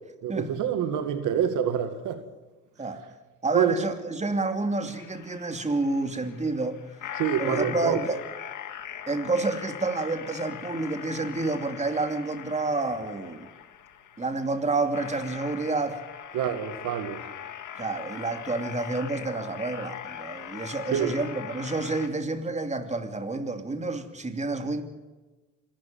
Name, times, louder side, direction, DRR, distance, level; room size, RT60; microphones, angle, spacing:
voice 1, 0.2-2.2 3.5-3.8 7.2-8.0 16.3-17.2 20.9-21.2, right 8 dB, 85° right, 2.1 m, -26 dB
voice 2, 3.4-6.9 7.4-8.2 9.1-13.5 14.2-16.0 17.8-24.8, right 3 dB, 25° right, 2.8 m, -29 dB
sound 1, 4.9-22.1, left 9 dB, 80° left, 2.2 m, -41 dB
26.5 x 13.0 x 9.1 m
cardioid pair, 90°, 30 cm